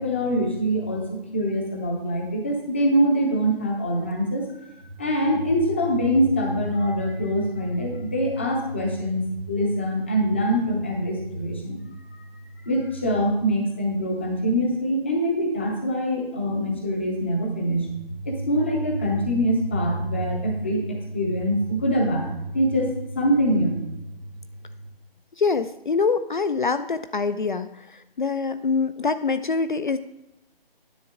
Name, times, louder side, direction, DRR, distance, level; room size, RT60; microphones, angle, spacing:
voice 1, 0.0-4.7 5.0-9.2 9.5-12.3 12.7-17.9 18.2-23.8, equal, 10° left, 1 dB, 0.6 m, -24 dB
voice 2, 25.4-30.0, left 4 dB, 55° left, 11 dB, 0.5 m, -25 dB
10.5 x 7.4 x 3.6 m, 0.91 s
figure-of-eight pair, 150°, 30 cm